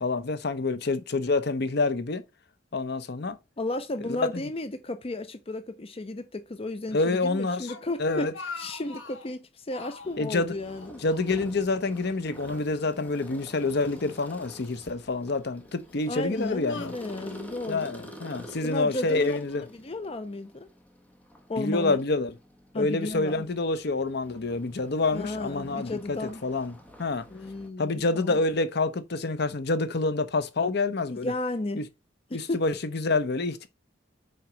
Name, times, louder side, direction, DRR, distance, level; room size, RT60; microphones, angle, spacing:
voice 1, 0.0-2.2 2.7-3.4 4.0-4.4 6.9-7.7 8.0-8.3 10.2-10.5 11.0-16.9 17.7-19.6 21.6-22.3 22.7-26.7 27.0-27.2 27.8-31.3 31.8-31.9 32.3-33.7, left 3 dB, 60° left, 0.8 m, -27 dB
voice 2, 3.6-8.3 8.6-11.0 16.1-17.9 18.6-20.7 21.5-22.0 22.7-23.4 25.1-26.4 27.3-28.4 31.1-31.8 32.3-32.6, left 2 dB, 30° left, 0.6 m, -34 dB
Speech, 7.7-9.3 9.7-10.2 10.6-11.7 12.0-12.2 13.0-14.0 14.7-15.1 15.7-17.4, left 4 dB, 80° left, 1.1 m, -44 dB
sound 1, 10.0-27.7, equal, 10° left, 1.1 m, -48 dB
5.9 x 4.5 x 5.0 m
head